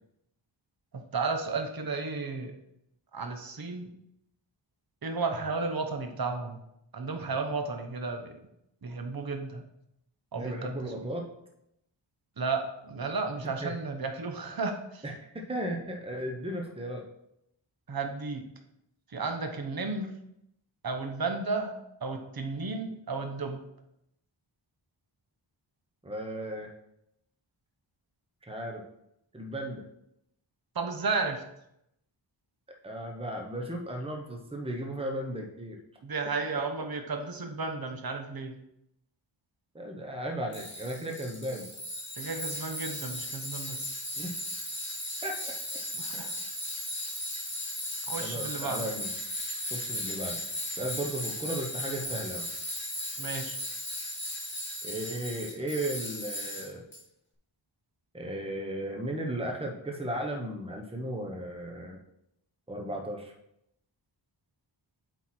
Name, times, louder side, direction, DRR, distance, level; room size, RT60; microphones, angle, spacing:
voice 1, 0.9-2.5 3.1-3.9 5.0-6.6 6.9-8.4 8.8-9.7 10.3-11.1 12.4-15.0 17.9-18.4 19.1-20.1 20.8-23.6 30.7-31.4 36.0-38.6 42.2-44.0 45.9-46.3 48.1-48.9 53.2-53.6, right 4 dB, 50° right, 5 dB, 1.0 m, -33 dB
voice 2, 10.3-11.3 13.4-13.7 15.0-17.0 26.0-26.7 28.5-28.8 29.3-29.8 32.8-35.8 39.7-41.7 44.2-44.3 45.2-45.5 48.2-49.1 49.7-50.4 50.7-52.4 54.8-56.8 58.1-62.0 62.7-63.3, right 1 dB, 10° right, 1 dB, 1.1 m, -35 dB
Tools, 40.5-57.0, left 1 dB, 25° left, 2.2 m, -36 dB
8.0 x 4.6 x 4.5 m, 0.79 s
wide cardioid pair, 90°, 47 cm